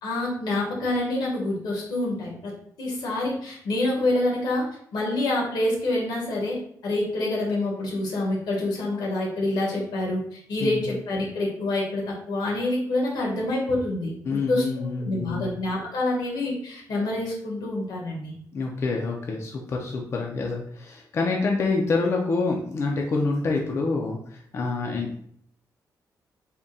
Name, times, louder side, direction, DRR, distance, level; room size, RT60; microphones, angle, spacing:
voice 1, 0.0-2.5 2.8-4.6 4.9-6.6 6.8-14.6 15.0-18.3, left 2 dB, 85° left, -2 dB, 1.3 m, -27 dB
voice 2, 14.2-15.5 18.5-25.3, left 3 dB, 40° left, 0 dB, 0.4 m, -27 dB
3.5 x 2.2 x 4.0 m, 0.66 s
wide cardioid pair, 150°, 7 cm